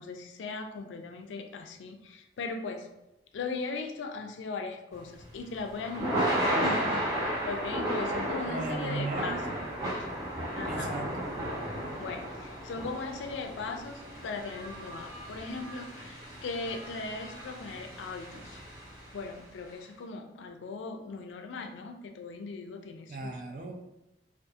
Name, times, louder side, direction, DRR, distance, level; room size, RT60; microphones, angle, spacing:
voice 1, 0.0-2.9 3.3-6.4 6.6-9.4 9.9-10.0 10.6-10.9 12.0-18.6 19.1-23.3, left 4 dB, 85° left, 5 dB, 0.3 m, -38 dB
Thunder / Rain, 5.0-19.3, right 1 dB, 20° right, 0.8 m, -34 dB
voice 2, 8.4-9.5 10.7-11.3 23.1-23.7, right 3 dB, 45° right, 2 dB, 0.4 m, -36 dB
2.6 x 2.3 x 2.3 m, 0.91 s
head